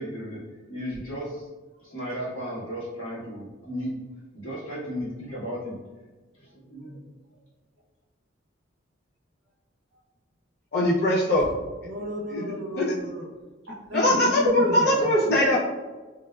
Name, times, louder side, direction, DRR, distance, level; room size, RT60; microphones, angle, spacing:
voice 1, 0.0-1.5 1.8-4.0 4.3-5.8 6.4-7.0, equal, 85° left, -9 dB, 1.5 m, -35 dB
voice 2, 10.7-11.5 12.3-12.4 12.8-12.9 13.9-15.6, left 1 dB, 50° left, -5 dB, 0.5 m, -21 dB
voice 3, 11.8-13.3 13.7-15.1, equal, 65° right, -1 dB, 0.5 m, -35 dB
3.1 x 2.1 x 2.3 m, 1.2 s
head